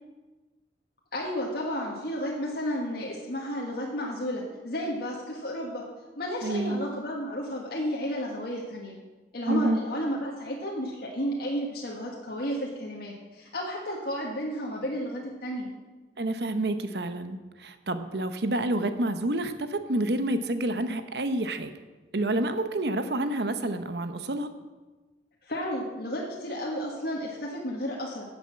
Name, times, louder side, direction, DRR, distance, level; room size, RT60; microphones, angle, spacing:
voice 1, 1.1-5.8 6.2-9.0 9.3-15.7 25.5-28.2, equal, 60° left, -3 dB, 1.8 m, -32 dB
voice 2, 6.4-6.8 9.5-9.8 16.2-21.7 22.1-24.5, right 1 dB, 65° right, 9 dB, 0.9 m, -28 dB
10.5 x 7.9 x 7.3 m, 1.3 s
head